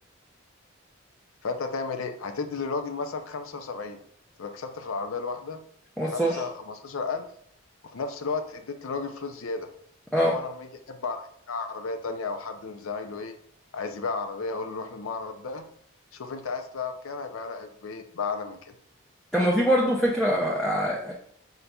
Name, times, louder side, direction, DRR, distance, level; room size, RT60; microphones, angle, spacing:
voice 1, 1.4-4.0 4.4-5.6 6.1-7.2 7.9-9.7 10.2-13.4 13.7-15.7 16.1-18.8, left 4 dB, 70° left, 7 dB, 0.5 m, -33 dB
voice 2, 6.0-6.4 10.1-10.3 19.3-21.1, equal, 5° left, -4 dB, 0.5 m, -23 dB
5.6 x 3.9 x 2.3 m, 0.66 s
head